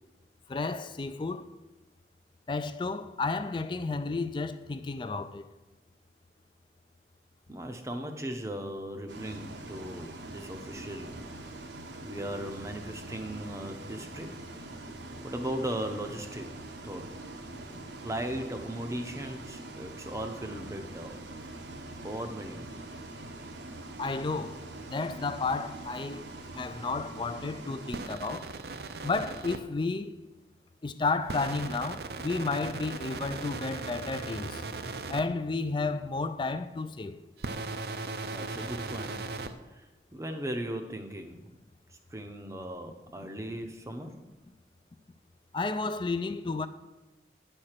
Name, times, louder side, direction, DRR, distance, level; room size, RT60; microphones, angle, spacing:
voice 1, 0.5-1.5 2.5-5.5 24.0-28.5 29.0-30.2 30.8-34.6 35.1-37.2 45.5-46.7, left 3 dB, 25° left, 0.3 m, -32 dB
voice 2, 7.5-11.2 12.0-14.3 15.2-16.5 16.8-17.1 18.0-21.2 22.0-22.7 38.3-39.2 39.7-41.4 41.9-44.1, right 1 dB, 15° right, 0.6 m, -37 dB
Bus, 9.1-28.1, right 2 dB, 80° right, 0.9 m, -44 dB
sound 1, 27.9-29.6 31.3-35.2 37.4-39.5, right 3 dB, 60° right, 0.5 m, -38 dB
9.5 x 4.4 x 6.5 m
head